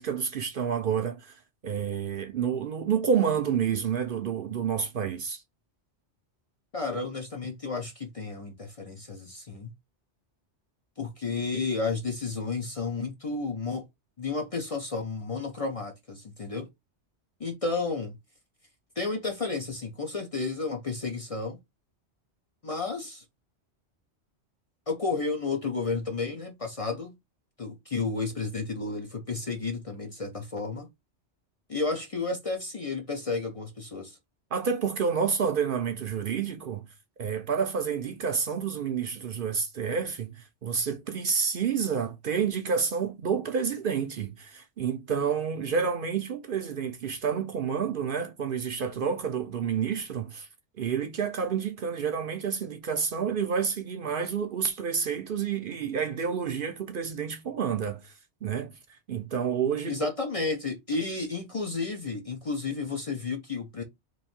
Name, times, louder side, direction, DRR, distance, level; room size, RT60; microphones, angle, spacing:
voice 1, 0.0-5.4 34.5-36.8 37.2-50.5 50.8-58.1 58.4-60.0, right 6 dB, 60° right, 0.7 m, -29 dB
voice 2, 6.7-9.7 11.0-13.9 14.2-16.7 17.4-18.2 19.0-21.6 22.6-23.2 24.9-27.1 27.6-30.9 31.7-34.2 59.8-63.8, left 4 dB, 40° left, 0.6 m, -32 dB
3.2 x 2.6 x 4.1 m
omnidirectional pair, 1.2 m